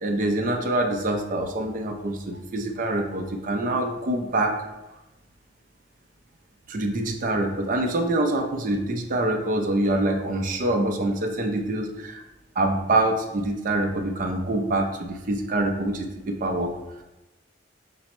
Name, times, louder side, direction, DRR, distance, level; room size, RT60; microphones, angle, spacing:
voice 1, 0.0-4.6 6.7-12.2 12.6-16.7, right 1 dB, 45° right, 3 dB, 0.4 m, -25 dB
5.3 x 2.0 x 4.3 m, 1.0 s
head